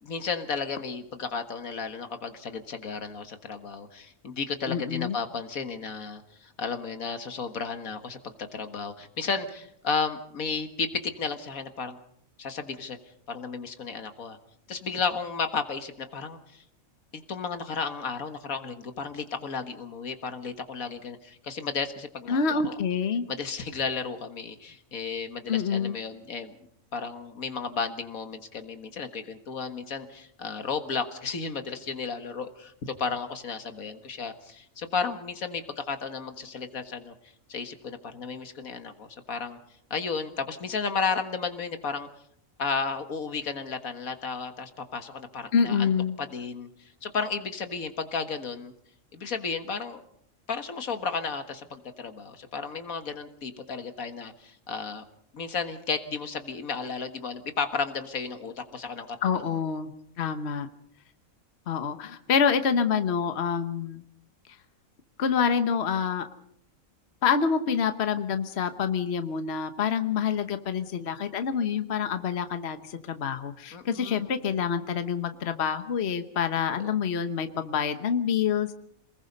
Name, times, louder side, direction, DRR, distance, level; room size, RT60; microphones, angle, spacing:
voice 1, 0.0-12.0 12.4-13.0 13.3-14.4 14.7-16.6 17.1-22.8 23.3-26.6 26.9-37.1 37.5-39.6 39.9-42.1 42.6-45.9 46.2-48.7 49.1-50.0 50.5-55.0 55.3-59.4 73.7-74.3 76.8-76.9, left 5 dB, 80° left, 8 dB, 2.0 m, -33 dB
voice 2, 4.7-5.2 22.3-23.3 25.5-26.0 45.5-46.1 59.2-59.9 60.2-60.7 61.7-64.0 65.2-66.3 67.2-78.7, left 6 dB, 50° left, 9 dB, 1.3 m, -27 dB
28.0 x 20.5 x 5.4 m, 0.70 s
omnidirectional pair, 1.4 m